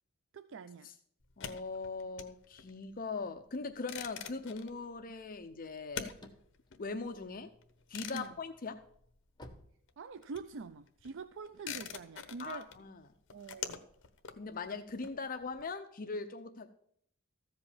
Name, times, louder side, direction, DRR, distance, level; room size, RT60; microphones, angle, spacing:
voice 1, 0.3-0.9 8.1-8.3 10.0-12.7 13.3-13.9, right 4 dB, 60° right, 0.4 m, -45 dB
sound 1, 1.2-9.6 9.8-15.6, left 7 dB, 60° left, 1.0 m, -47 dB
voice 2, 1.4-6.1 6.8-7.5 7.9-8.8 12.4-13.0 14.3-16.7, left 4 dB, 40° left, 0.6 m, -40 dB
sound 2, 6.1-7.9 8.4-10.6, left 1 dB, 20° left, 1.1 m, -55 dB
14.0 x 5.3 x 7.2 m
head